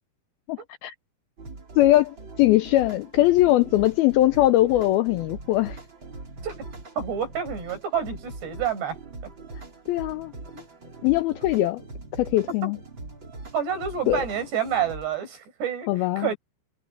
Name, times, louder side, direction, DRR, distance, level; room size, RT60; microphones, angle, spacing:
voice 1, 0.5-0.9 1.8-5.8 9.9-10.3 11.0-11.8 12.1-12.8 14.1-14.3 15.9-16.3, left 15 dB, 85° left, 2.2 m, -21 dB
sound 1, 1.4-15.2, right 3 dB, 25° right, 4.5 m, -41 dB
voice 2, 7.0-9.0 12.6-12.7 13.5-15.9 16.2-16.4, right 8 dB, 70° right, 8.2 m, -28 dB
omnidirectional pair, 5.0 m